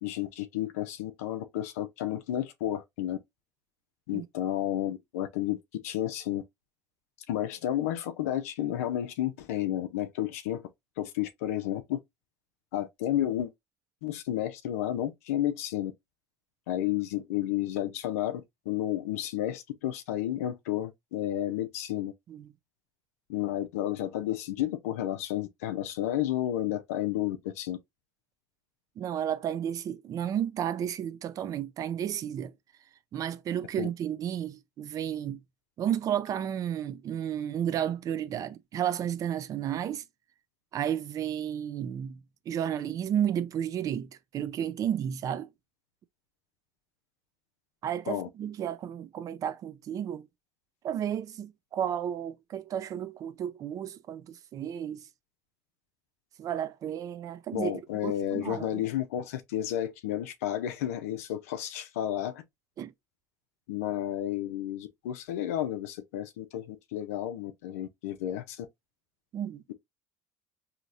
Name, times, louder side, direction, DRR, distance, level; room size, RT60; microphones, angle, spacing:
voice 1, 0.0-3.2 4.1-5.6 5.8-6.4 7.3-10.6 11.0-12.0 12.7-13.5 14.0-15.9 16.7-22.1 23.3-27.8 33.8-33.9 48.1-48.3 57.5-62.4 63.7-68.7, left 12 dB, 80° left, 0.4 m, -31 dB
voice 2, 29.0-32.5 33.1-35.4 35.8-40.0 40.7-42.2 42.5-45.5 47.8-50.3 50.8-55.1 56.4-57.7 58.0-58.8 62.8-62.9 69.3-69.6, right 9 dB, 50° right, 0.5 m, -32 dB
3.9 x 2.8 x 2.4 m
hypercardioid pair, 75°, 8 cm